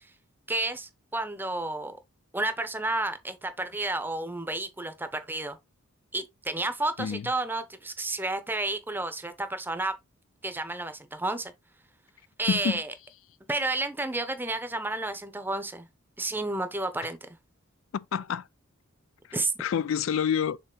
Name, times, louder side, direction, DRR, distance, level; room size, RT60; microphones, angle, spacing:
voice 1, 0.5-2.0 2.3-5.6 6.1-9.9 10.4-11.5 12.4-12.9 13.5-15.9 16.2-17.2 19.3-19.5, right 2 dB, 10° right, 0.8 m, -31 dB
voice 2, 12.5-12.8 17.9-18.5 19.6-20.6, left 7 dB, 65° left, 0.3 m, -28 dB
6.7 x 4.0 x 3.8 m
head